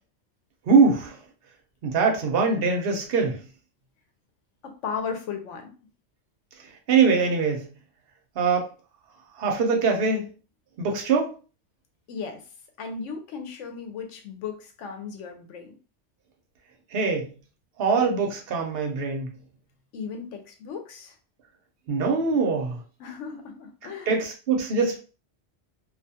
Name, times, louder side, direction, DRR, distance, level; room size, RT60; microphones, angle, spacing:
voice 1, 0.7-1.2 1.8-3.4 6.9-7.6 8.4-8.7 9.4-10.2 10.8-11.3 16.9-17.3 17.8-19.3 21.9-22.8 24.1-25.0, right 4 dB, 60° right, 2 dB, 0.8 m, -22 dB
voice 2, 4.6-5.7 12.1-12.4 12.8-15.7 19.9-21.2 22.3-22.4 23.0-24.2, left 6 dB, 90° left, 5 dB, 1.0 m, -36 dB
2.4 x 2.3 x 2.7 m, 0.36 s
omnidirectional pair, 1.2 m